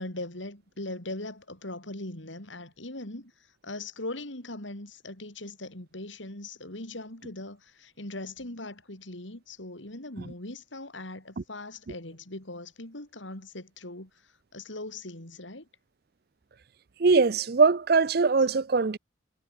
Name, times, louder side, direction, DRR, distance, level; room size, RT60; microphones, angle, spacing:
voice 1, 0.0-3.3 3.6-15.7, left 2 dB, 80° left, 4.6 m, -40 dB
voice 2, 17.0-19.0, right 4 dB, 55° right, 0.5 m, -21 dB
head